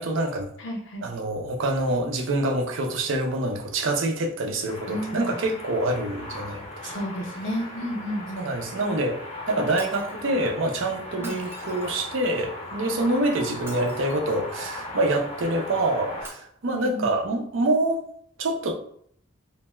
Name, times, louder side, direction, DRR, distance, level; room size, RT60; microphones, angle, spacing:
voice 1, 0.0-0.5 1.0-6.9 8.4-18.0 18.4-18.7, right 2 dB, 75° right, 2 dB, 0.5 m, -26 dB
voice 2, 0.6-1.1 4.9-5.4 6.8-8.5 11.2-11.3 16.7-17.1, equal, 70° left, 1 dB, 0.7 m, -32 dB
sound 1, 4.7-16.3, left 2 dB, 35° left, 0.6 m, -38 dB
Shatter, 9.8-10.2 11.1-12.2 13.5-14.4 16.2-16.3, right 1 dB, 10° right, 0.4 m, -44 dB
2.6 x 2.2 x 3.0 m, 0.63 s
head